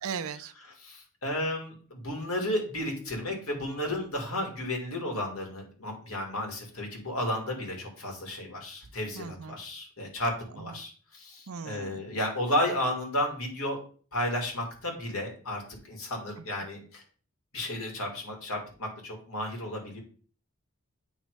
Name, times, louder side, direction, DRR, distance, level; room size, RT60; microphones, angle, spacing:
voice 1, 0.0-0.5 9.2-9.6 11.5-12.0, right 6 dB, 75° right, 12 dB, 0.5 m, -37 dB
voice 2, 0.6-13.8 14.1-17.0 17.5-20.0, left 1 dB, 80° left, 1 dB, 2.5 m, -33 dB
8.9 x 3.1 x 4.8 m, 0.41 s
head